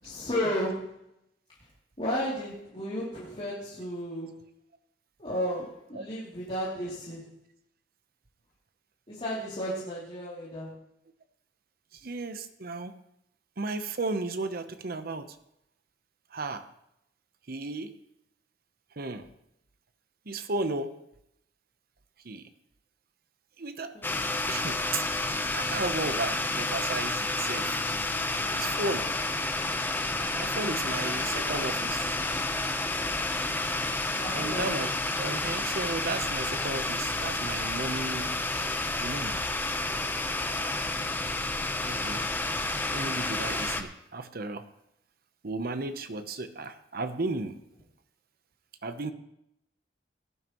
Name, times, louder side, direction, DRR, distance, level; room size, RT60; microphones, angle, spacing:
voice 1, 0.0-0.9 2.0-4.4 5.2-7.3 9.1-10.8 23.9-24.2 34.2-34.7, equal, 35° left, -9 dB, 3.0 m, -33 dB
voice 2, 12.0-13.0 13.6-15.4 16.3-16.7 17.5-18.0 19.0-19.3 20.3-21.0 22.2-22.5 23.6-23.9 24.5-25.1 25.5-27.8 28.5-29.1 30.3-32.2 34.3-34.9 35.2-38.3 39.0-39.4 40.6-40.8 41.8-42.2 42.9-44.6 45.4-47.6 48.8-49.1, right 3 dB, 55° right, 10 dB, 0.9 m, -34 dB
sound 1, 24.0-43.8, left 2 dB, 10° left, 0.8 m, -30 dB
18.0 x 11.0 x 3.1 m, 0.80 s
head